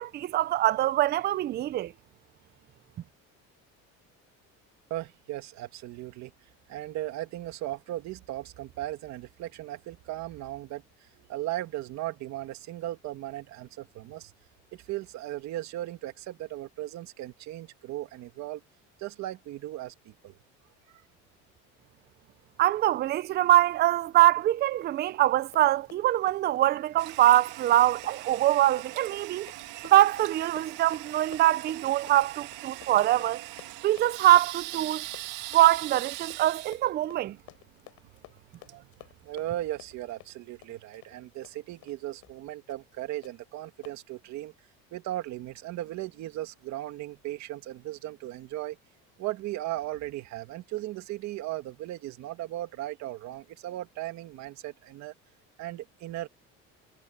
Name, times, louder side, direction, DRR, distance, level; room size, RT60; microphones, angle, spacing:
voice 1, 0.0-1.9 22.6-33.4 33.8-35.0 35.5-37.4, right 14 dB, 35° right, 0.4 m, -23 dB
voice 2, 4.9-6.3 6.7-14.3 14.7-18.6 19.0-20.4 20.9-21.0 38.6-38.9 39.2-44.5 44.9-48.8 49.2-55.1 55.6-56.3, right 15 dB, 65° right, 2.3 m, -37 dB
Run, 25.4-42.0 42.2-42.4 42.7-42.9 43.2-43.3 43.8-44.0, left 18 dB, 70° left, 3.5 m, -53 dB
Toilet flush, 27.0-39.6, right 18 dB, 90° right, 2.0 m, -42 dB
cardioid pair, 145°, 30 cm